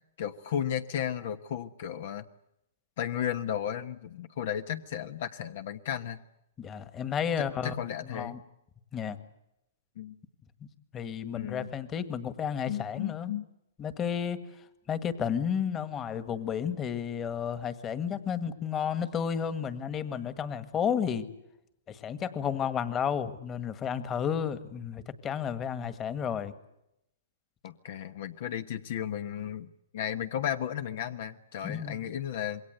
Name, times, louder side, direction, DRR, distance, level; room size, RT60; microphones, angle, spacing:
voice 1, 0.2-2.2 3.0-6.2 7.4-8.4 10.0-10.2 11.3-11.7 12.7-13.5 27.6-29.7 29.9-32.6, left 9 dB, 60° left, 10 dB, 1.2 m, -34 dB
voice 2, 6.6-7.7 8.1-8.4 8.9-9.2 10.9-13.3 13.8-14.4 14.9-21.3 21.9-26.5 31.6-32.0, left 8 dB, 20° left, 12 dB, 1.8 m, -32 dB
27.0 x 22.0 x 8.0 m, 0.83 s
hypercardioid pair, 135°, 0 cm